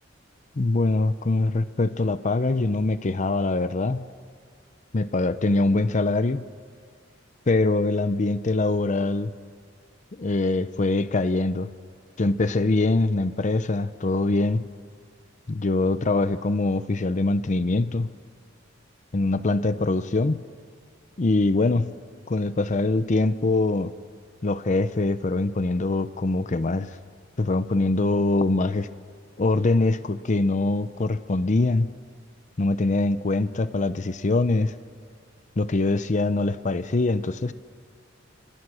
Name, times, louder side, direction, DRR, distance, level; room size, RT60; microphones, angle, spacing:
voice 1, 0.6-4.1 4.9-6.5 7.5-9.3 10.2-11.7 12.2-14.7 15.5-18.1 19.1-20.4 21.2-21.9 22.3-23.9 24.4-26.9 27.4-28.9 29.4-31.9 32.6-34.7 35.6-37.5, left 2 dB, 40° left, 13 dB, 0.6 m, -23 dB
29.5 x 24.5 x 6.3 m, 2.1 s
head